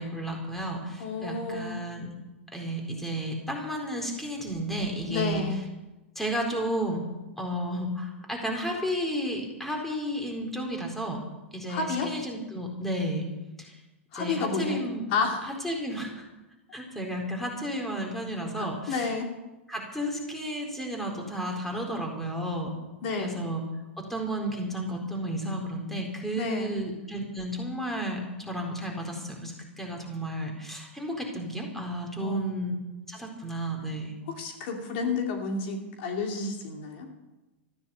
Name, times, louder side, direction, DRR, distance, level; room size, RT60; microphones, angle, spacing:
voice 1, 0.0-2.1 2.5-5.4 6.2-7.0 7.4-11.2 11.5-13.2 13.6-13.7 14.1-15.0 15.6-16.2 16.7-19.1 19.7-22.7 23.2-23.6 24.0-28.2 28.5-32.7 33.1-34.2, equal, 5° left, 1 dB, 4.3 m, -32 dB
voice 2, 1.0-1.8 5.1-5.6 11.7-12.1 14.1-14.8 15.1-15.5 18.5-19.3 23.0-23.4 26.4-26.8 32.2-32.5 34.3-37.1, left 4 dB, 55° left, 3 dB, 2.6 m, -31 dB
14.5 x 10.5 x 8.4 m, 1.1 s
hypercardioid pair, 115°, 7 cm